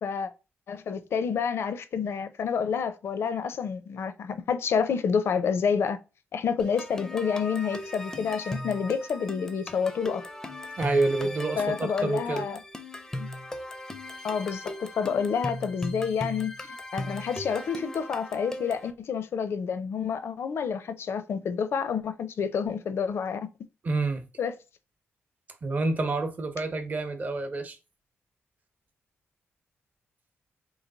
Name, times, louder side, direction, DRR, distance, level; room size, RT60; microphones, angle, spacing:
voice 1, 0.7-6.0 6.3-10.2 11.6-12.6 13.2-13.3 14.2-23.5 24.4-24.5, left 6 dB, 70° left, 0.5 m, -29 dB
sound 1, 6.6-18.9, left 1 dB, 10° left, 0.5 m, -38 dB
voice 2, 10.8-12.4 23.8-24.2 25.6-27.8, right 3 dB, 40° right, 0.7 m, -28 dB
3.9 x 3.2 x 3.8 m
wide cardioid pair, 160°, 4 cm